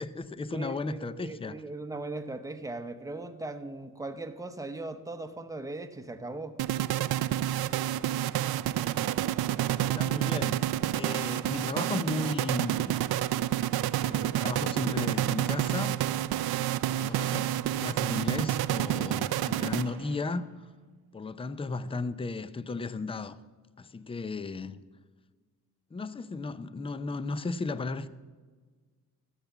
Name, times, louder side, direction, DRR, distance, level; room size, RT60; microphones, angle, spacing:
voice 1, 0.0-1.6 9.8-12.9 14.0-16.0 16.9-20.7 21.1-23.4 23.8-24.8 25.9-28.1, left 3 dB, 15° left, 0.5 m, -35 dB
voice 2, 0.5-6.6, right 2 dB, 10° right, 0.9 m, -39 dB
sound 1, 6.6-20.2, right 13 dB, 80° right, 0.6 m, -29 dB
14.0 x 7.9 x 7.2 m
cardioid pair, 105°, 37 cm